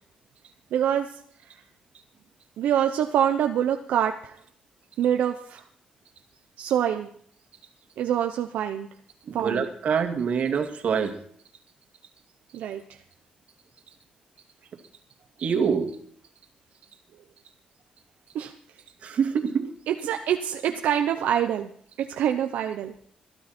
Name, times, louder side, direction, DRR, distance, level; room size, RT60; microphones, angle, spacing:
voice 1, 0.7-1.2 2.6-4.4 5.0-5.6 6.6-7.1 8.0-8.9 9.3-9.6 12.5-13.0 18.3-18.5 19.9-21.7 22.0-22.9, right 10 dB, 85° right, 5 dB, 0.9 m, -25 dB
voice 2, 9.3-11.1 15.4-16.0 19.0-19.7, right 6 dB, 60° right, 5 dB, 2.3 m, -25 dB
22.0 x 12.5 x 4.4 m, 0.62 s
cardioid pair, 105°, 3 cm